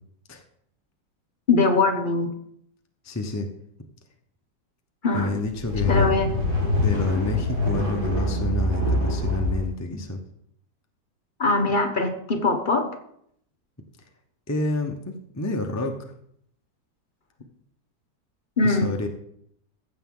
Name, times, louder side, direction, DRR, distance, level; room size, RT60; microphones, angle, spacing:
voice 1, 1.5-2.3 5.0-5.3 5.9-6.3 11.4-12.9 18.6-18.9, left 3 dB, 35° left, 4 dB, 0.9 m, -21 dB
voice 2, 3.0-3.5 5.1-6.2 6.7-10.2 14.5-16.0 18.6-19.1, left 2 dB, 20° left, 3 dB, 0.4 m, -28 dB
sound 1, 5.4-9.7, left 1 dB, 60° right, 4.7 m, -24 dB
15.0 x 6.6 x 3.8 m, 0.70 s
omnidirectional pair, 1.9 m